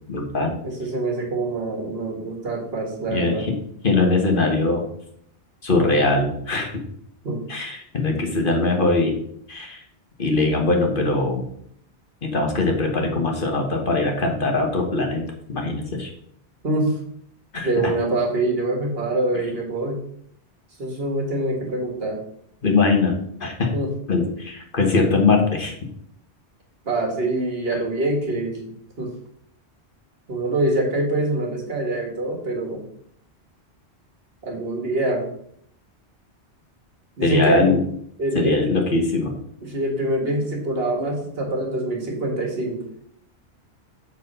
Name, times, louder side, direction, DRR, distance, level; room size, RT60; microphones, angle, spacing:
voice 1, 0.1-0.5 3.1-3.6 3.8-4.8 5.6-6.7 7.5-9.2 9.5-9.8 10.2-11.5 12.2-16.1 17.5-17.9 22.6-23.7 24.1-25.7 37.2-37.8 38.3-39.4, left 3 dB, 55° left, 2 dB, 1.4 m, -21 dB
voice 2, 0.6-3.5 7.2-7.4 16.6-16.9 17.6-20.0 20.8-22.2 23.7-23.9 26.9-29.1 30.3-32.8 34.4-35.3 37.2-37.8 38.2-38.6 39.6-42.9, right 2 dB, 60° right, 0 dB, 1.9 m, -25 dB
7.4 x 4.2 x 5.4 m, 0.68 s
omnidirectional pair, 1.1 m